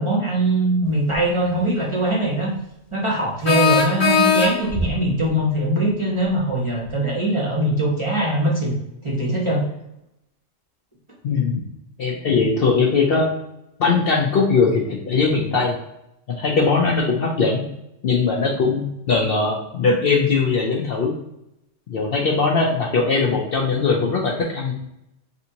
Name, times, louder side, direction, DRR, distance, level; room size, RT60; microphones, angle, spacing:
voice 1, 0.0-2.5 2.9-8.7 9.0-9.6, right 1 dB, 30° right, -4 dB, 0.7 m, -21 dB
sound 1, 1.1-1.2 3.4-4.9, left 5 dB, 80° left, 1.3 m, -19 dB
voice 2, 11.2-11.6 12.0-13.3 13.8-15.8 16.3-17.6 18.0-21.1 21.9-24.7, left 4 dB, 60° left, -2 dB, 0.7 m, -20 dB
3.4 x 2.7 x 2.8 m, 0.84 s
omnidirectional pair, 1.3 m